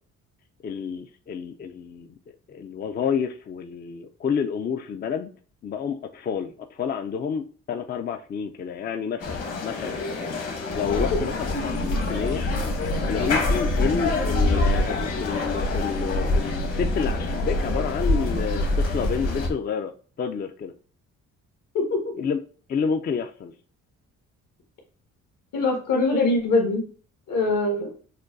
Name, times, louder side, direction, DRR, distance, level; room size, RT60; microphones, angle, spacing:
voice 1, 0.6-5.3 5.6-10.0 10.4-12.4 13.1-19.9 20.2-20.7 22.2-22.4 22.7-23.5, left 6 dB, 35° left, 6 dB, 0.4 m, -29 dB
sound 1, 9.2-19.5, left 2 dB, 55° left, 1.3 m, -25 dB
voice 2, 25.5-26.9 27.3-27.9, left 2 dB, 75° left, 1 dB, 1.7 m, -22 dB
6.4 x 2.2 x 2.5 m, 0.41 s
cardioid pair, 90°, 30 cm